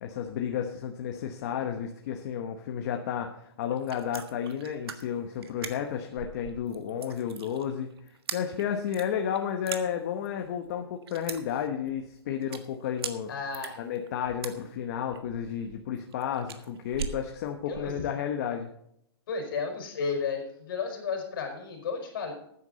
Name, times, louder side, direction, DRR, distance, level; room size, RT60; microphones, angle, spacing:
voice 1, 0.0-7.9 8.3-13.3 13.8-18.7, left 8 dB, 40° left, 4 dB, 1.1 m, -32 dB
sound 1, 3.6-18.0, right 7 dB, 70° right, 1.5 m, -41 dB
voice 2, 13.3-13.8 17.7-17.9 19.3-22.3, left 5 dB, 55° left, 4 dB, 4.7 m, -33 dB
13.5 x 9.6 x 4.0 m, 0.74 s
hypercardioid pair, 170°, 13 cm